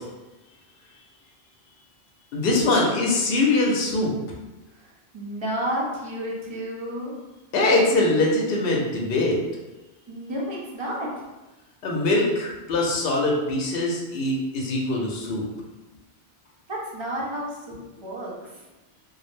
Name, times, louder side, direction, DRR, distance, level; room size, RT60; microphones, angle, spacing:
voice 1, 2.3-4.1 7.5-9.4 11.8-15.4, left 2 dB, 70° left, -1 dB, 0.8 m, -22 dB
voice 2, 4.7-7.1 10.1-11.2 16.7-18.6, equal, 35° right, -3 dB, 0.5 m, -31 dB
2.4 x 2.0 x 3.1 m, 1.1 s
omnidirectional pair, 1.1 m